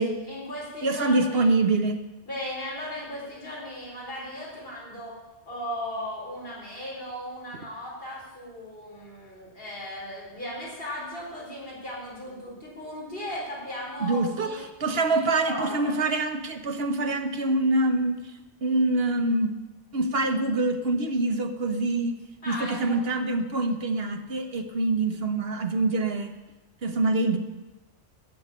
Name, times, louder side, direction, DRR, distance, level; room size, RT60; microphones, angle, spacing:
voice 1, 0.0-1.5 2.3-5.1 5.5-14.6 15.1-15.9 22.4-23.0, left 1 dB, 55° left, -5 dB, 4.4 m, -37 dB
voice 2, 0.8-2.0 14.0-18.2 18.6-19.5 19.9-22.2 22.5-26.3 26.8-27.4, right 2 dB, 60° right, 7 dB, 1.2 m, -25 dB
12.5 x 7.2 x 8.4 m, 1.1 s
omnidirectional pair, 1.2 m